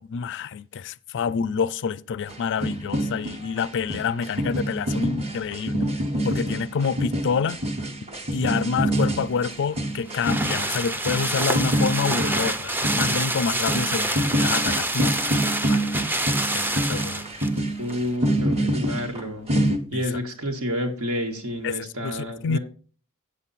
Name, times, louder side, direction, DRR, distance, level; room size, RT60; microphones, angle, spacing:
voice 1, 0.0-5.9 6.2-7.6 8.3-15.3 15.7-16.0 16.5-17.2 19.9-20.0 21.6-21.7 22.0-22.6, left 5 dB, 55° left, 0.4 m, -27 dB
sound 1, 2.3-19.8, right 1 dB, 30° right, 1.3 m, -27 dB
sound 2, 9.4-17.6 17.9-18.0, right 1 dB, 10° right, 0.5 m, -27 dB
voice 2, 17.8-19.5 19.9-22.6, equal, 80° right, 1.8 m, -29 dB
8.4 x 7.2 x 4.2 m
head